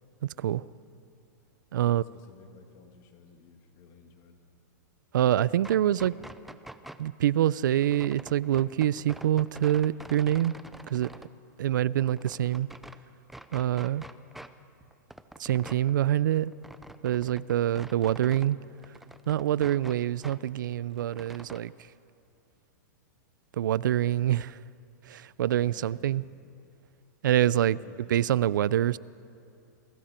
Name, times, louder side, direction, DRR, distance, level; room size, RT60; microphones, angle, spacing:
voice 1, 0.2-0.7 1.7-2.0 5.1-6.1 7.0-10.5 10.9-11.1 11.6-12.7 13.5-14.0 15.4-16.5 17.0-18.6 19.3-21.7 23.5-24.6 25.0-26.2 27.2-27.8 28.1-29.0, right 12 dB, 85° right, 0.5 m, -25 dB
voice 2, 1.8-4.4 25.6-26.3 27.6-28.8, left 6 dB, 35° left, 2.2 m, -54 dB
sound 1, 5.5-7.1 7.8-11.3 11.7-13.0 13.3-14.5 14.8-18.5 18.8-20.4 20.7-21.6, right 1 dB, ahead, 0.5 m, -47 dB
28.0 x 21.0 x 4.4 m
supercardioid pair, 160°, 10 cm